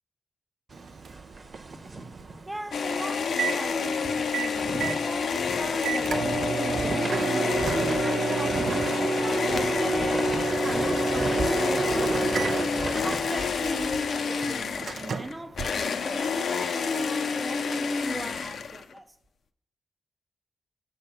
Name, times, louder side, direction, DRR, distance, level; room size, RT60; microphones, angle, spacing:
sound 1, 0.7-3.0 3.3-3.4 3.8-14.9, right 2 dB, 45° right, 1.0 m, -37 dB
Microwave oven, 0.7-16.4, right 4 dB, 75° right, 0.4 m, -31 dB
voice 1, 2.5-8.9 9.2-19.1, right 1 dB, 20° right, 0.6 m, -39 dB
sound 2, 2.7-19.0, left 5 dB, 80° left, 0.4 m, -29 dB
6.8 x 5.4 x 6.7 m
cardioid pair, 60°, 0 cm